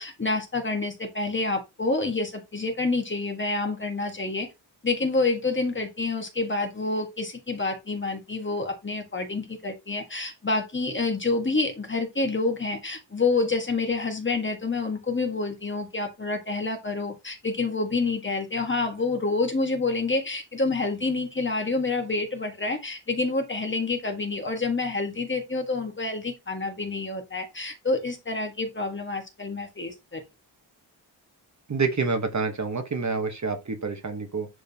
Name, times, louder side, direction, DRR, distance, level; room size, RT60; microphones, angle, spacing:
voice 1, 0.0-4.5 4.8-30.2, left 3 dB, 25° left, 1.4 m, -28 dB
voice 2, 31.7-34.5, right 4 dB, 40° right, 1.0 m, -27 dB
11.0 x 3.7 x 2.8 m
wide cardioid pair, 155°, 45 cm